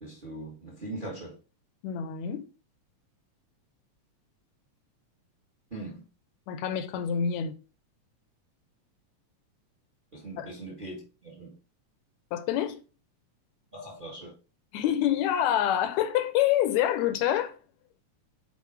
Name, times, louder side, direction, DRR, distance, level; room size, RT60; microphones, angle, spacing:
voice 1, 0.0-1.4 5.7-6.0 10.1-11.5 13.7-14.3, right 2 dB, 25° right, 1.1 m, -40 dB
voice 2, 1.8-2.4 6.5-7.6 10.4-10.5 12.3-12.8 14.7-17.6, left 10 dB, 80° left, 1.9 m, -26 dB
8.3 x 4.4 x 3.4 m
omnidirectional pair, 3.4 m